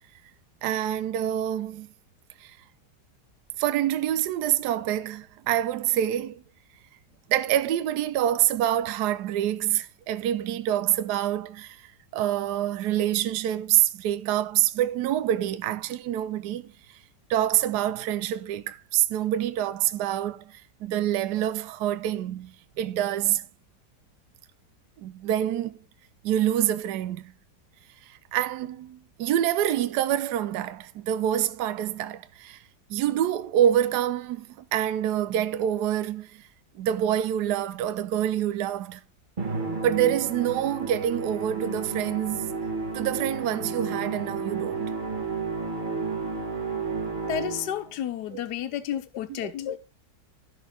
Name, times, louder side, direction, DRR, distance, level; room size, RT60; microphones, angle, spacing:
voice 1, 0.6-1.9 2.4-2.6 3.6-6.4 7.3-16.7 17.3-23.5 25.0-25.8 26.2-27.3 28.1-32.6 32.9-36.5 36.8-39.0 39.8-42.6 42.9-44.9 48.3-48.4 49.3-49.5, right 11 dB, 70° right, 1.2 m, -26 dB
Musical instrument, 39.4-47.9, right 4 dB, 30° right, 1.5 m, -32 dB
voice 2, 47.3-49.8, left 10 dB, 75° left, 1.4 m, -31 dB
13.5 x 6.2 x 3.8 m
omnidirectional pair, 1.9 m